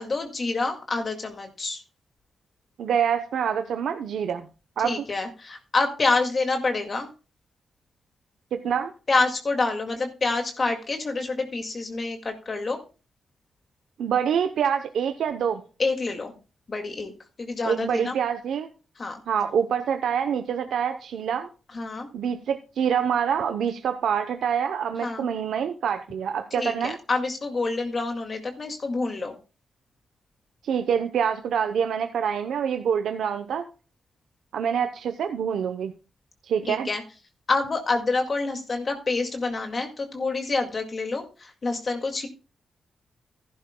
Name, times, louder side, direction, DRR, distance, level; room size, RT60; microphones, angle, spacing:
voice 1, 0.0-1.8 4.8-7.1 9.1-12.8 15.8-16.3 16.7-17.1 17.4-18.2 19.0-19.2 21.7-22.1 25.0-25.2 26.6-29.3 36.7-37.0 37.5-42.3, left 3 dB, 45° left, 4 dB, 2.0 m, -27 dB
voice 2, 2.8-4.5 4.8-5.1 8.5-8.9 14.0-15.6 17.6-18.7 19.3-21.5 22.1-27.0 30.6-33.7 34.5-35.9 36.4-36.9, right 7 dB, 85° right, 7 dB, 0.7 m, -26 dB
14.5 x 11.5 x 2.2 m, 0.33 s
cardioid pair, 80°, 0 cm